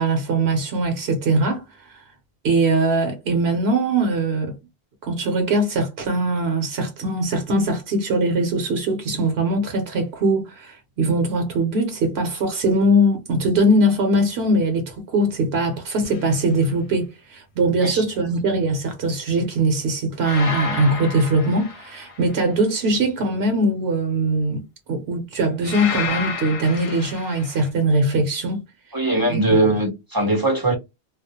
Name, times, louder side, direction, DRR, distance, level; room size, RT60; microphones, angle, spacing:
voice 1, 0.0-2.0 2.4-4.5 5.0-24.6 24.9-28.6 29.5-29.7, right 1 dB, 70° right, 0.9 m, -21 dB
sound 1, 16.0-16.4 20.2-22.4 25.6-27.7, left 4 dB, 40° left, 0.5 m, -31 dB
voice 2, 28.9-30.8, right 2 dB, 30° right, 0.5 m, -20 dB
2.4 x 2.0 x 2.7 m
omnidirectional pair, 1.1 m